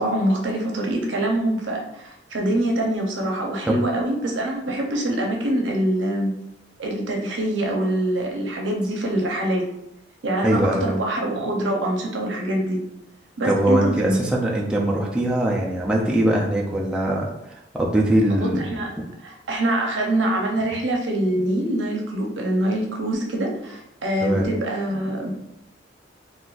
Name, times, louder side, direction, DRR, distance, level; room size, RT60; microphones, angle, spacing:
voice 1, 0.0-6.3 6.8-9.7 10.2-12.8 13.4-14.2 18.3-18.9 19.2-25.3, right 1 dB, 80° right, 1 dB, 0.7 m, -24 dB
voice 2, 10.4-10.9 13.4-17.3 17.7-18.6 24.2-24.5, right 1 dB, 5° right, -3 dB, 0.4 m, -21 dB
3.8 x 2.4 x 2.4 m, 0.83 s
head